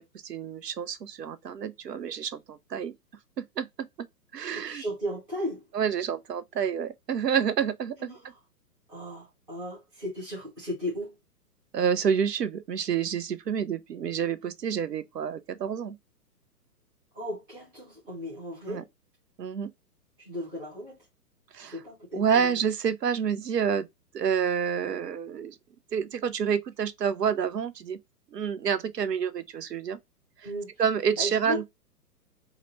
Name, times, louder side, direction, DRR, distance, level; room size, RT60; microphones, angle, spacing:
voice 1, 0.0-2.9 3.6-3.7 4.3-4.8 5.7-8.1 11.7-16.0 18.7-18.8 19.4-19.7 21.5-21.8 22.1-23.9 24.1-25.6 25.9-28.0 28.3-30.0 30.8-31.7, right 7 dB, 80° right, 0.7 m, -28 dB
voice 2, 4.5-5.7 8.0-8.3 8.9-11.2 17.1-18.9 20.2-21.0 21.6-22.6 30.4-30.7 31.2-31.6, equal, 5° right, 0.4 m, -36 dB
4.7 x 2.1 x 3.0 m
figure-of-eight pair, 120°, 48 cm